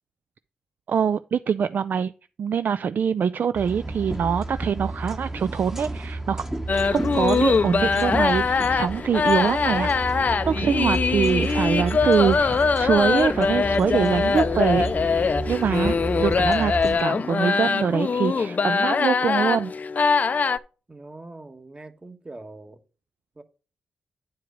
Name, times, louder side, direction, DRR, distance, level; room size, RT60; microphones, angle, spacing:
voice 1, 0.9-2.1 2.4-6.4 6.9-19.7, right 7 dB, 60° right, 0.3 m, -24 dB
sound 1, 3.5-17.0, right 2 dB, 10° right, 1.0 m, -32 dB
sound 2, 6.7-20.6, left 5 dB, 50° left, 0.5 m, -22 dB
voice 2, 20.9-22.8 23.4-23.5, right 2 dB, 25° right, 1.3 m, -42 dB
9.3 x 4.7 x 5.1 m
supercardioid pair, 40°, 4 cm